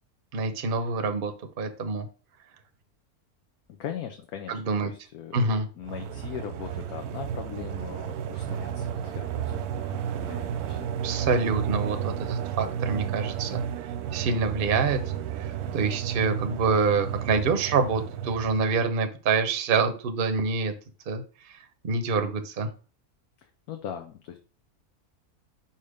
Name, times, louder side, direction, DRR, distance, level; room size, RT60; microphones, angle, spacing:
voice 1, 0.3-1.3 1.6-2.1 4.5-4.9 5.3-5.7 11.0-13.6 14.1-15.0 15.4-20.7 21.1-21.2 21.8-22.7, right 4 dB, 45° right, 8 dB, 0.9 m, -26 dB
voice 2, 3.7-10.9 23.4-24.4, left 9 dB, 80° left, 4 dB, 1.2 m, -40 dB
sound 1, 5.8-18.9, right 9 dB, 85° right, 1.1 m, -32 dB
5.6 x 4.3 x 5.0 m, 0.37 s
omnidirectional pair, 1.6 m